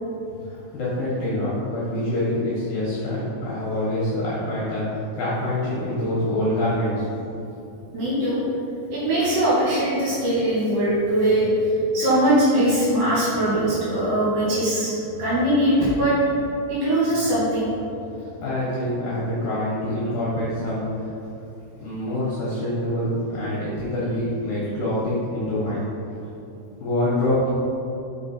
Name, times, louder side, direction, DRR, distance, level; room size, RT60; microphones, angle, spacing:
voice 1, 0.3-7.1 18.1-21.1 21.8-25.8 26.8-27.6, left 1 dB, 65° left, -8 dB, 2.5 m, -26 dB
voice 2, 7.9-8.4 8.9-16.2 16.7-17.7, right 1 dB, 60° right, -9 dB, 2.9 m, -21 dB
6.0 x 5.9 x 4.4 m, 2.8 s
omnidirectional pair, 5.6 m